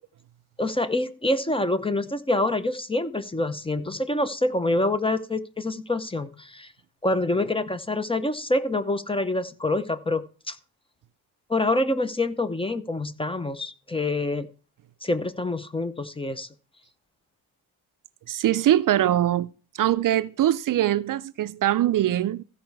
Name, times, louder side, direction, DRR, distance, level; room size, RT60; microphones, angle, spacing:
voice 1, 0.6-6.7 7.0-10.6 11.5-14.5 15.0-16.5, left 2 dB, 15° left, 0.6 m, -26 dB
voice 2, 18.3-19.5 19.7-22.4, right 12 dB, 60° right, 0.5 m, -22 dB
15.0 x 5.5 x 4.6 m
wide cardioid pair, 130°, 37 cm